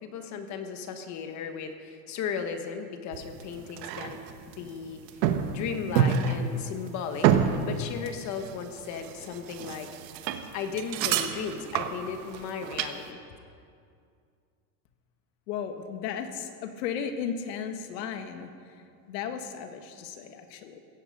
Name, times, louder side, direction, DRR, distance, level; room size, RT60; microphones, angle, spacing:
voice 1, 0.0-4.2 4.5-5.0 5.5-7.3 7.6-9.9 10.5-13.2, left 6 dB, 35° left, 7 dB, 1.2 m, -36 dB
sound 1, 3.1-12.9, right 8 dB, 85° right, 1.4 m, -28 dB
voice 2, 15.5-18.5 19.1-20.8, left 7 dB, 85° left, 7 dB, 1.8 m, -35 dB
16.5 x 15.0 x 5.3 m, 2.4 s
supercardioid pair, 160°, 48 cm